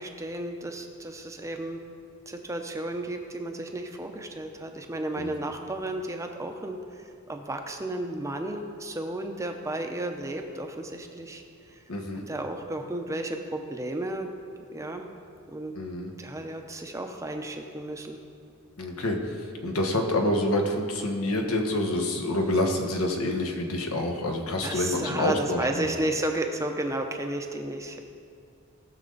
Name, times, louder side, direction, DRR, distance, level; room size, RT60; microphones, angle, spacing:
voice 1, 0.0-1.8 2.3-6.8 7.3-11.4 12.3-14.3 14.7-15.1 15.5-15.7 16.2-18.2 24.6-28.0, right 1 dB, 15° right, 4 dB, 0.7 m, -33 dB
voice 2, 11.9-12.2 15.7-16.1 18.8-25.9, left 1 dB, 75° left, 3 dB, 1.3 m, -27 dB
18.0 x 6.7 x 4.0 m, 2.3 s
head